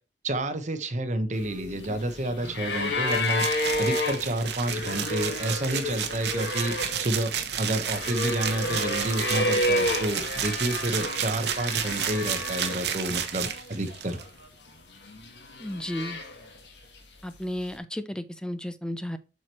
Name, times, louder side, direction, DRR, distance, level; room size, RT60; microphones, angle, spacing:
voice 1, 0.2-14.2, right 1 dB, 45° right, 1.2 m, -30 dB
sound 1, 1.3-13.0 13.3-14.2 15.0-16.7 17.7-17.8, left 1 dB, 75° left, 2.0 m, -31 dB
sound 2, 3.1-14.2, right 8 dB, 70° right, 1.1 m, -32 dB
voice 2, 15.6-16.2 17.2-19.2, left 1 dB, 5° left, 0.7 m, -33 dB
7.6 x 6.2 x 3.1 m
head